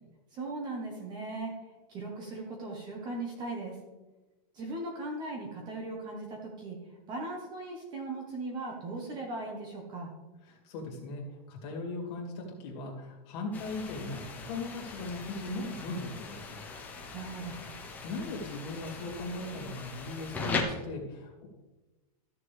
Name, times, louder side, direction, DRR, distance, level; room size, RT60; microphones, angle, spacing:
voice 1, 0.3-1.5 1.9-3.7 4.5-6.8 7.1-10.1 17.1-17.6, right 2 dB, 20° right, 0 dB, 1.2 m, -38 dB
voice 2, 10.5-16.6 17.8-21.5, left 2 dB, 40° left, -1 dB, 2.6 m, -39 dB
sound 1, 13.5-20.6, left 4 dB, 10° left, 0.8 m, -40 dB
14.0 x 6.7 x 3.4 m, 1.1 s
supercardioid pair, 170°, 21 cm